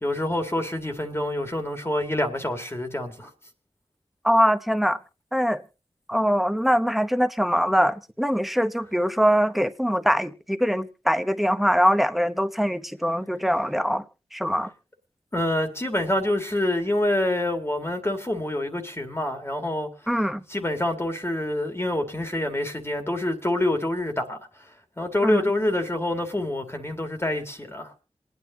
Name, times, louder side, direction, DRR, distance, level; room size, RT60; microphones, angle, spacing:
voice 1, 0.0-3.3 15.3-19.9 20.5-24.7 25.0-27.9, left 1 dB, 25° left, 1.9 m, -26 dB
voice 2, 4.2-5.0 5.3-5.6 6.1-14.0 14.3-14.7 20.1-20.4 25.2-25.4, equal, ahead, 1.0 m, -22 dB
27.5 x 9.3 x 2.7 m
wide cardioid pair, 50°, 11 cm